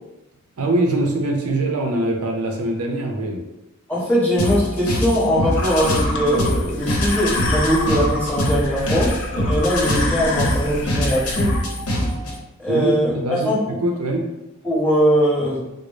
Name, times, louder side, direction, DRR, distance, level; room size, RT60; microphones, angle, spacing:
voice 1, 0.6-3.4 12.7-14.3, right 1 dB, 90° right, 2 dB, 0.6 m, -23 dB
voice 2, 3.9-11.6 12.6-13.6 14.6-15.6, equal, 5° left, -9 dB, 0.9 m, -21 dB
sound 1, 4.4-12.4, equal, 85° left, 0.8 m, -24 dB
sound 2, 5.5-11.6, left 2 dB, 50° left, 0.4 m, -28 dB
3.8 x 2.1 x 3.3 m, 0.94 s
head